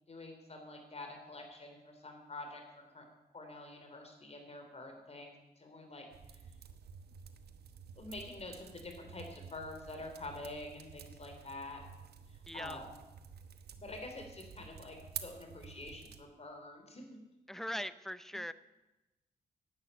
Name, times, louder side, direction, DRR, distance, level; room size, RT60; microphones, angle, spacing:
voice 1, 0.1-2.6 2.9-3.1 3.3-6.4 8.0-11.8 12.3-13.0 13.8-17.2, left 2 dB, 40° left, 4 dB, 3.6 m, -47 dB
sound 1, 6.1-16.2, right 7 dB, 75° right, 1.1 m, -51 dB
voice 2, 12.5-12.8 17.5-18.5, equal, ahead, 14 dB, 0.7 m, -40 dB
11.0 x 9.1 x 9.0 m, 1.0 s
cardioid pair, 65°, 17 cm